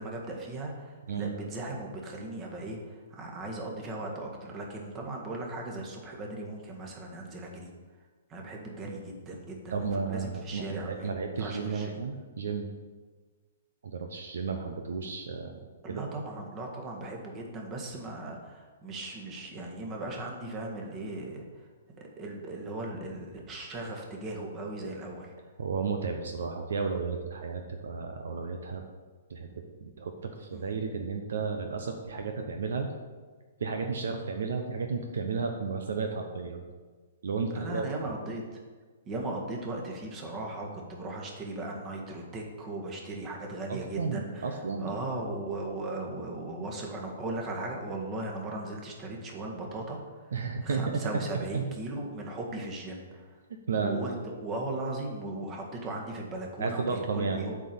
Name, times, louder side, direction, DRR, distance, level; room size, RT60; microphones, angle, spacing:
voice 1, 0.0-7.7 8.3-11.1 11.4-12.0 15.8-21.7 22.0-25.3 30.5-30.7 37.5-38.4 39.1-50.3 50.6-53.3 53.8-57.5, right 2 dB, 25° right, 0 dB, 1.8 m, -37 dB
voice 2, 9.7-12.7 13.8-15.6 15.9-16.0 25.6-28.8 29.3-29.5 29.8-32.9 33.6-36.6 37.2-38.1 43.7-44.9 50.3-51.0 51.5-51.7 53.7-54.0 56.6-57.4, right 5 dB, 65° right, 4 dB, 0.8 m, -33 dB
8.1 x 4.5 x 7.1 m, 1.4 s
figure-of-eight pair, 120°, 0 cm